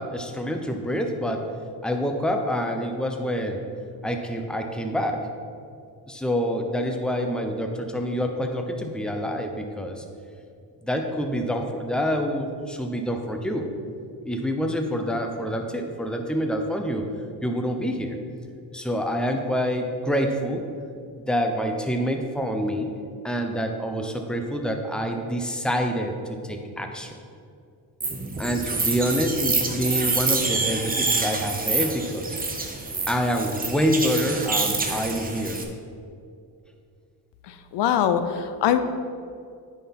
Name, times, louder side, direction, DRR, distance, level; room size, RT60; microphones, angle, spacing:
voice 1, 0.0-1.5 1.8-3.6 4.0-5.3 6.1-10.0 10.8-13.7 14.2-17.1 17.4-18.2 18.7-20.6 21.3-22.9 23.2-27.2 28.4-32.4 33.1-35.6, equal, ahead, 4 dB, 0.9 m, -27 dB
sound 1, 28.0-35.6, right 3 dB, 20° right, 1.1 m, -27 dB
voice 2, 37.5-38.8, left 9 dB, 70° left, 10 dB, 0.7 m, -23 dB
9.0 x 6.1 x 4.3 m, 2.4 s
cardioid pair, 80°, 43 cm